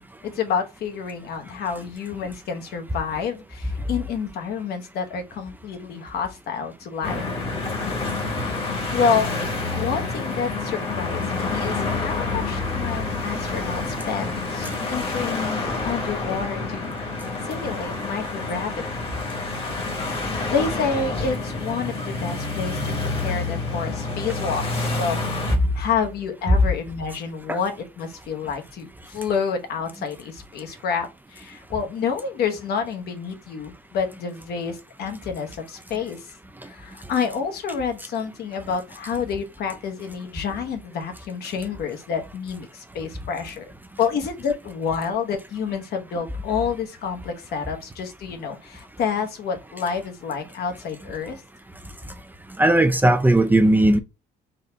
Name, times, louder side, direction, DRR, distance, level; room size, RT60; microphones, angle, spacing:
voice 1, 0.2-7.2 8.9-18.7 20.0-25.2 25.7-36.3 36.6-51.4, left 6 dB, 70° left, 1.1 m, -29 dB
sound 1, 7.0-25.6, left 3 dB, 35° left, 1.2 m, -28 dB
voice 2, 52.6-54.0, right 1 dB, 10° right, 0.4 m, -17 dB
4.0 x 2.7 x 3.3 m
cardioid pair, 110°, 17 cm